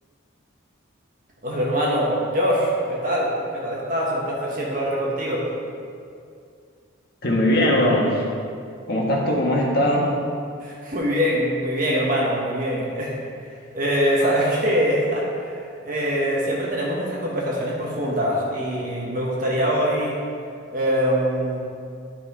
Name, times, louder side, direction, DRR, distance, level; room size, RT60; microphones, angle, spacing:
voice 1, 1.4-5.4 10.6-15.6 15.8-20.2 20.7-21.6, equal, 45° right, -4 dB, 1.3 m, -23 dB
voice 2, 7.2-8.2 8.9-10.1 14.2-14.3, left 1 dB, 50° left, -3 dB, 1.5 m, -20 dB
10.5 x 5.7 x 4.2 m, 2.3 s
head